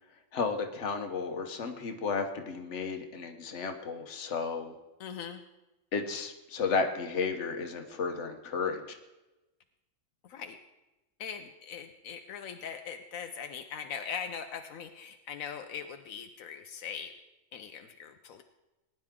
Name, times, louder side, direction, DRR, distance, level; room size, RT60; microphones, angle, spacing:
voice 1, 0.3-4.7 5.9-8.8, left 5 dB, 60° left, 5 dB, 1.4 m, -33 dB
voice 2, 5.0-5.4 10.2-10.6 11.2-17.1 17.5-18.4, left 7 dB, 85° left, 6 dB, 1.1 m, -41 dB
20.0 x 10.5 x 3.7 m, 1.0 s
omnidirectional pair, 1.4 m